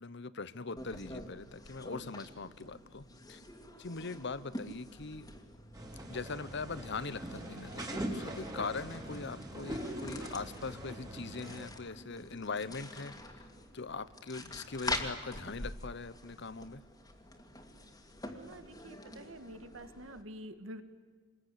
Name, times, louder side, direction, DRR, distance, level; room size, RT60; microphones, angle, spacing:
voice 1, 0.0-3.4 3.8-5.3 6.1-13.4 13.7-16.8, left 4 dB, 60° left, 16 dB, 1.0 m, -41 dB
sound 1, 0.8-20.2, left 1 dB, 20° left, 2.4 m, -46 dB
sound 2, 5.7-11.7, right 1 dB, 20° right, 3.2 m, -42 dB
voice 2, 18.3-20.8, right 1 dB, 80° right, 10 dB, 1.9 m, -48 dB
27.0 x 21.5 x 10.0 m, 1.4 s
head